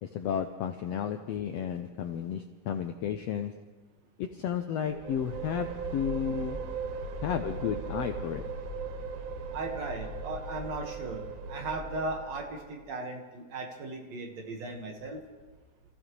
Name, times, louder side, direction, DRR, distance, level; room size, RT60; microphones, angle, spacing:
voice 1, 0.0-3.6 4.2-6.7 7.2-8.5, left 9 dB, 90° left, 7 dB, 1.4 m, -33 dB
sound 1, 4.9-12.7, right 4 dB, 75° right, 2.6 m, -38 dB
voice 2, 9.5-15.2, right 2 dB, 60° right, 2 dB, 2.6 m, -37 dB
28.5 x 15.0 x 3.2 m, 1.3 s
omnidirectional pair, 3.7 m